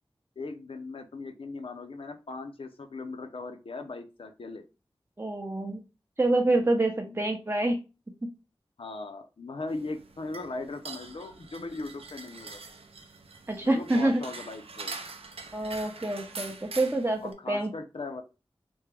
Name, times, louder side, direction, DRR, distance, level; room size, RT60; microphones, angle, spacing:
voice 1, 0.4-4.6 7.1-7.2 8.8-12.6 13.6-15.0 17.2-18.2, left 3 dB, 70° left, 7 dB, 0.6 m, -39 dB
voice 2, 5.2-5.8 6.2-7.8 8.2-8.3 13.5-14.2 15.5-17.7, right 2 dB, 25° right, 2 dB, 0.5 m, -27 dB
sound 1, 9.7-17.3, right 4 dB, 90° right, 0.5 m, -44 dB
3.4 x 2.1 x 3.3 m, 0.29 s
wide cardioid pair, 65°, 10 cm